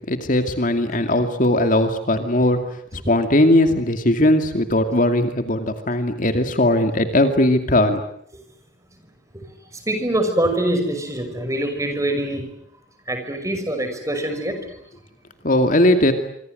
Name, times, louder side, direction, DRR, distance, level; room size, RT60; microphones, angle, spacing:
voice 1, 0.1-2.6 2.9-8.0 15.4-16.1, left 1 dB, 45° left, 7 dB, 2.5 m, -18 dB
voice 2, 9.9-12.4 13.1-14.6, right 1 dB, 15° right, 6 dB, 5.8 m, -24 dB
26.0 x 26.0 x 7.9 m, 0.70 s
head